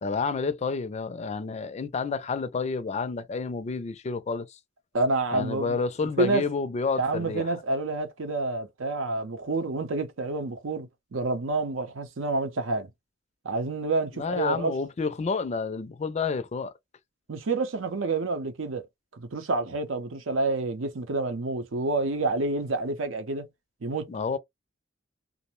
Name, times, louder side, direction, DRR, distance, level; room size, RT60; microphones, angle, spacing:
voice 1, 0.0-4.6 5.3-7.5 14.2-16.7 24.1-24.4, left 4 dB, 35° left, 0.4 m, -30 dB
voice 2, 4.9-5.8 6.2-6.4 7.0-12.9 13.4-14.7 17.3-18.8 19.1-23.5 23.8-24.1, right 3 dB, 85° right, 0.7 m, -28 dB
2.6 x 2.0 x 3.0 m
head